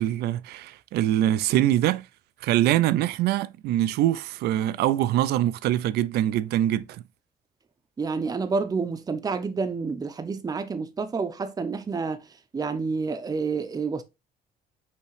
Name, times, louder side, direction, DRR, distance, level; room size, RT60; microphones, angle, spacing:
voice 1, 0.0-2.1 2.4-7.0, right 13 dB, 70° right, 0.4 m, -24 dB
voice 2, 8.0-12.2 12.5-14.0, right 4 dB, 20° right, 0.6 m, -29 dB
5.6 x 3.0 x 3.2 m
cardioid pair, 110°, 17 cm